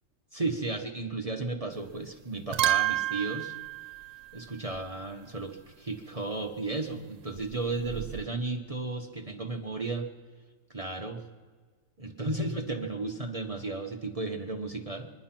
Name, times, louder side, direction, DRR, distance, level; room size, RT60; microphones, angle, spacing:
voice 1, 0.3-3.5 4.3-10.1 10.7-11.2 12.0-15.1, right 2 dB, 30° right, 2 dB, 0.7 m, -34 dB
sound 1, 1.7-2.1 2.4-4.9 7.4-8.3, right 14 dB, 85° right, 1.4 m, -31 dB
24.0 x 10.0 x 5.9 m, 1.5 s
omnidirectional pair, 1.9 m